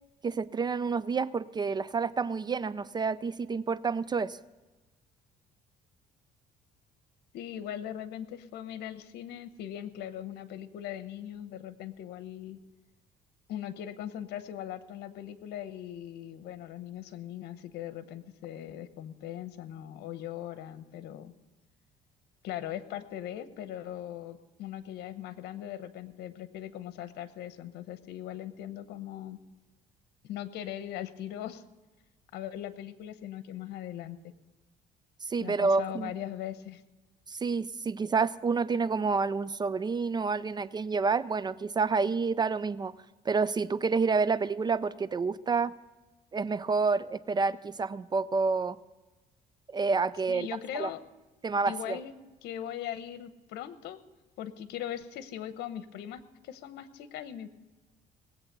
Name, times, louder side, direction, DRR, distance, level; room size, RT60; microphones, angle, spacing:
voice 1, 0.2-4.4 35.2-36.1 37.3-42.9 43.3-45.8 46.3-48.8 49.7-50.5 50.7-50.9 51.4-52.0, right 4 dB, 25° right, 17 dB, 0.4 m, -29 dB
voice 2, 7.3-12.6 13.5-21.3 22.4-29.4 30.2-31.6 32.3-34.2 35.4-36.8 50.3-51.0 51.7-52.1 52.4-54.0 54.4-57.5, left 11 dB, 80° left, 12 dB, 1.0 m, -40 dB
19.0 x 8.2 x 6.7 m, 1.2 s
cardioid pair, 110°, 17 cm